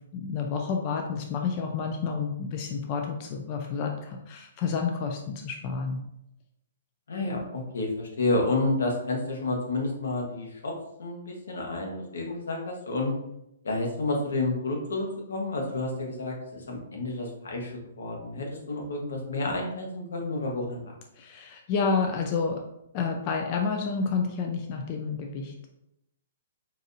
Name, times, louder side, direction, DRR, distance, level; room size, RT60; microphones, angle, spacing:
voice 1, 0.1-6.0 21.2-22.6 22.9-25.5, left 5 dB, 30° left, 2 dB, 0.3 m, -29 dB
voice 2, 7.1-10.7 11.0-13.1 13.6-20.9, left 2 dB, 85° left, 0 dB, 1.0 m, -30 dB
4.0 x 2.6 x 2.5 m, 0.82 s
hypercardioid pair, 160°, 0 cm